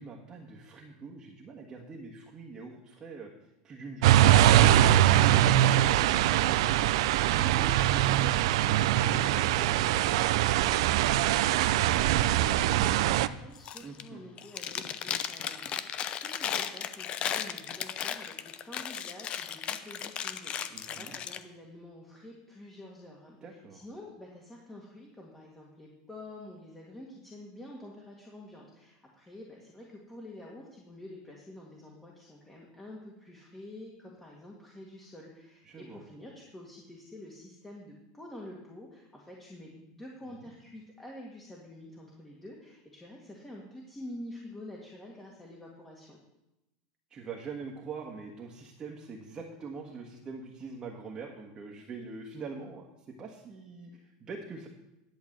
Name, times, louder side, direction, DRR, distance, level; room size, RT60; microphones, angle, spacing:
voice 1, 0.0-3.3 3.6-4.3 4.6-6.9 7.2-10.6 13.8-14.2 20.7-21.2 23.4-23.8 35.6-36.0 40.4-40.5 47.1-54.7, right 4 dB, 30° right, 0 dB, 1.5 m, -43 dB
sound 1, 4.0-13.3, right 12 dB, 75° right, 0.4 m, -23 dB
voice 2, 11.7-46.2, left 1 dB, 10° left, -2 dB, 1.8 m, -48 dB
Chewing mastication, 13.6-14.1 14.4-21.4, left 9 dB, 40° left, 0.6 m, -35 dB
10.5 x 4.7 x 7.7 m, 0.93 s
supercardioid pair, 125°, 3 cm